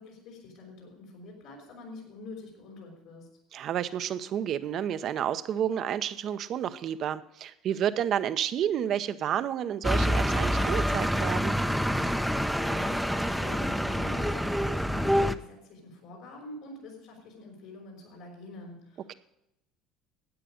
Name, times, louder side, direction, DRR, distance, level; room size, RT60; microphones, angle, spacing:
voice 1, 0.0-3.3 12.5-19.2, left 2 dB, 75° left, -2 dB, 4.9 m, -46 dB
voice 2, 3.5-11.5 19.1-19.2, right 9 dB, 55° right, 13 dB, 0.8 m, -30 dB
sound 1, 9.8-15.4, equal, ahead, 0.7 m, -27 dB
13.0 x 8.9 x 5.1 m, 0.83 s
hypercardioid pair, 80°, 0 cm